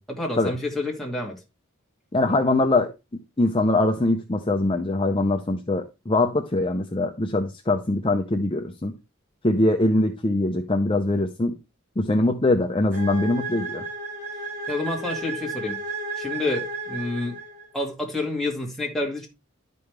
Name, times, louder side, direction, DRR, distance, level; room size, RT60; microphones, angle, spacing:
voice 1, 0.0-1.4 14.7-15.8 16.2-17.4 17.7-19.3, left 2 dB, ahead, 2.1 m, -29 dB
voice 2, 2.1-8.9 9.4-11.6 12.0-13.8, left 2 dB, 25° left, 0.6 m, -23 dB
sound 1, 12.9-17.8, right 2 dB, 50° right, 4.7 m, -33 dB
11.5 x 5.4 x 3.3 m
head